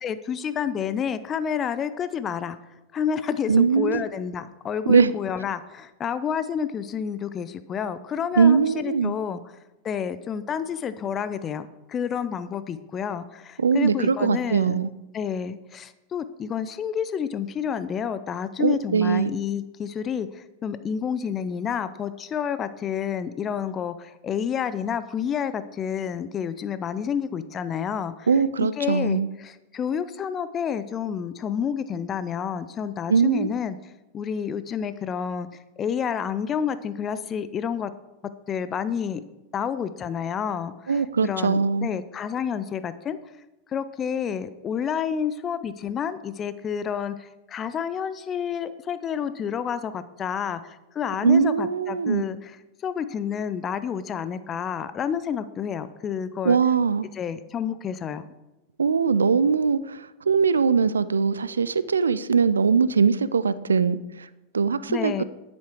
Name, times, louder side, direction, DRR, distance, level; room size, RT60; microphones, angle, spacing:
voice 1, 0.0-2.6 2.9-9.4 9.8-14.8 15.1-28.3 28.6-33.8 34.1-35.5 35.8-37.9 38.5-39.2 39.5-43.2 43.7-52.5 52.8-56.6 57.1-58.3 64.9-65.2, left 7 dB, 25° left, 13 dB, 0.5 m, -29 dB
voice 2, 3.5-4.0 4.9-5.1 8.4-9.1 13.6-14.9 18.6-19.3 28.3-29.3 33.1-33.5 40.9-41.9 51.2-52.2 56.4-57.1 58.8-64.3 64.5-65.2, right 5 dB, 70° right, 16 dB, 0.4 m, -21 dB
10.5 x 8.6 x 4.7 m, 1.0 s
figure-of-eight pair, 90°, 0 cm